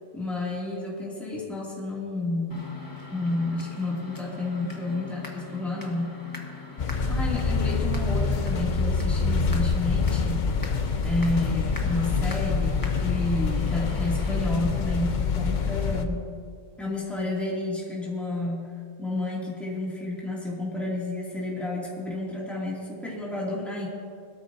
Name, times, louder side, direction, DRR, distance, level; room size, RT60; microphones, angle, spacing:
voice 1, 0.1-2.7 3.1-6.1 6.8-10.5 11.0-16.3 16.8-18.6 19.0-23.9, left 2 dB, ahead, -5 dB, 2.5 m, -30 dB
sound 1, 2.5-14.3, left 3 dB, 20° left, 1.4 m, -42 dB
sound 2, 6.8-16.1, left 4 dB, 45° left, 0.8 m, -26 dB
20.5 x 13.0 x 2.7 m, 2.2 s
omnidirectional pair, 1.2 m